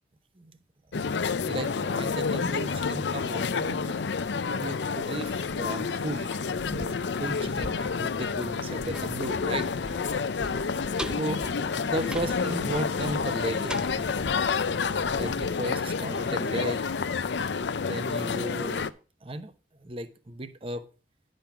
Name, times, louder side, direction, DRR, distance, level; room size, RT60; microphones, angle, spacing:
sound 1, 0.9-18.9, left 5 dB, 80° left, 0.5 m, -29 dB
voice 1, 1.5-4.0 4.5-6.3 6.7-9.7 11.2-11.5 11.8-14.1 15.1-16.9 17.8-18.9 19.2-19.5 19.8-20.8, right 1 dB, 30° right, 0.8 m, -35 dB
sound 2, 6.1-16.9 17.2-17.3, right 1 dB, 5° right, 0.4 m, -42 dB
10.5 x 5.3 x 5.8 m
head